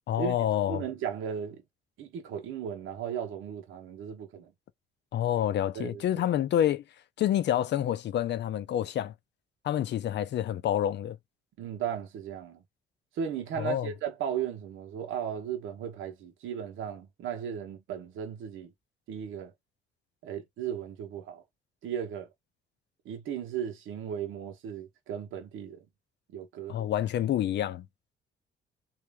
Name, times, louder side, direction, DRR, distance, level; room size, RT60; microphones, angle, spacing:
voice 1, 0.1-0.8 5.1-6.8 7.2-9.1 9.6-11.2 13.6-13.9 26.7-27.8, left 11 dB, 60° left, 0.5 m, -28 dB
voice 2, 0.7-1.6 2.0-4.5 5.7-6.2 11.6-12.6 13.1-18.7 19.1-19.5 20.2-21.4 21.8-22.3 23.0-25.8 26.3-26.9, right 8 dB, 85° right, 1.1 m, -36 dB
3.2 x 2.6 x 3.4 m
cardioid pair, 90°, 20 cm